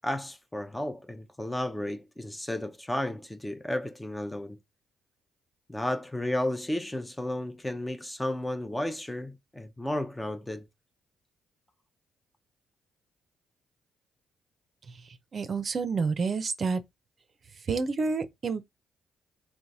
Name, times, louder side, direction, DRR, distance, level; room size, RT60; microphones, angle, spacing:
voice 1, 0.0-4.6 5.7-10.7, left 1 dB, 10° left, 0.7 m, -33 dB
voice 2, 15.3-16.8 17.7-18.7, right 4 dB, 50° right, 0.6 m, -29 dB
3.3 x 3.1 x 4.0 m
supercardioid pair, 60°, 0 cm